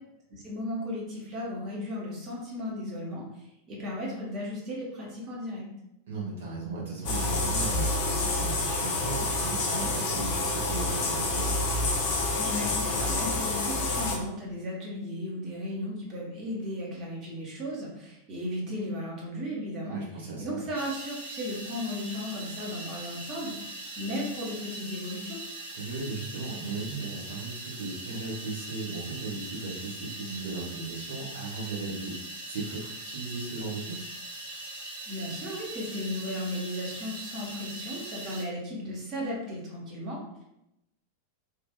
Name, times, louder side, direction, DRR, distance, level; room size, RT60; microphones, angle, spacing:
voice 1, 0.3-5.7 12.3-20.0 20.4-25.4 35.1-40.4, left 1 dB, 35° right, -4 dB, 1.1 m, -35 dB
voice 2, 6.1-11.5 19.8-20.6 25.7-32.1 32.5-34.0, right 3 dB, 55° right, -5 dB, 1.1 m, -36 dB
sound 1, 7.0-14.2, left 2 dB, 45° left, 0.6 m, -28 dB
sound 2, 20.7-38.4, right 2 dB, 75° right, 0.7 m, -41 dB
3.1 x 2.5 x 2.3 m, 0.85 s
figure-of-eight pair, 90°, 0 cm